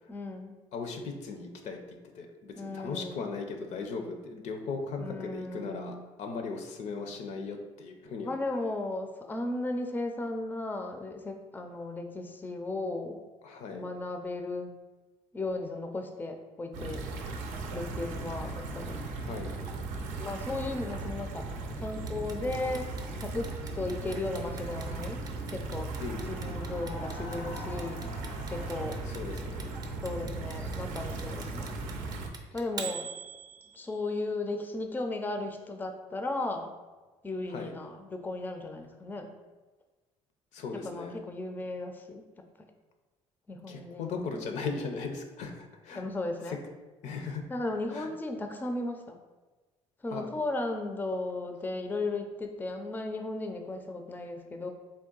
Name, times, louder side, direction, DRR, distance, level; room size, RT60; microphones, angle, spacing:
voice 1, 0.1-0.6 2.6-3.3 5.0-6.1 8.2-13.2 13.7-14.7 15.3-17.0 17.7-19.0 20.2-21.5 21.8-22.9 23.2-25.2 25.5-25.9 26.3-28.0 28.5-29.0 30.0-31.7 32.5-33.1 33.7-36.8 37.2-39.3 40.7-42.2 43.5-44.3 45.9-46.6 47.5-49.2 50.0-54.7, left 2 dB, 15° left, 5 dB, 0.4 m, -35 dB
voice 2, 0.7-8.3 13.4-13.8 19.2-19.5 26.0-26.6 29.1-29.7 37.5-37.7 40.5-41.2 43.7-46.1 46.5-46.6 47.0-47.4 47.9-48.1 50.1-50.3, left 4 dB, 70° left, 4 dB, 0.5 m, -38 dB
sound 1, 16.7-32.3, right 3 dB, 85° right, 0.5 m, -37 dB
Clock, 22.1-34.0, right 6 dB, 35° right, 0.5 m, -43 dB
sound 2, 26.2-30.9, left 2 dB, 90° left, 1.1 m, -47 dB
3.6 x 2.2 x 3.8 m, 1.2 s
supercardioid pair, 80°, 12 cm